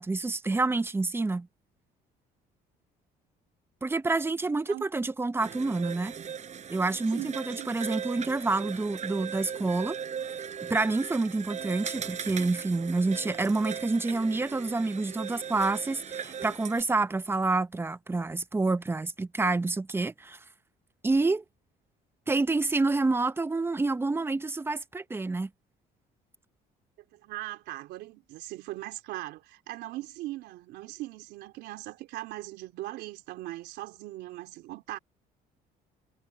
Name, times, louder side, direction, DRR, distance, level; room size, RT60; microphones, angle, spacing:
voice 1, 0.0-1.5 3.8-6.1 6.7-10.0 10.6-20.4 21.0-21.4 22.3-25.5, right 3 dB, 15° right, 0.8 m, -28 dB
sound 1, 5.4-16.8, right 7 dB, 45° right, 6.8 m, -39 dB
voice 2, 7.1-7.7 27.1-35.0, right 17 dB, 85° right, 3.8 m, -40 dB
cardioid pair, 110°, 17 cm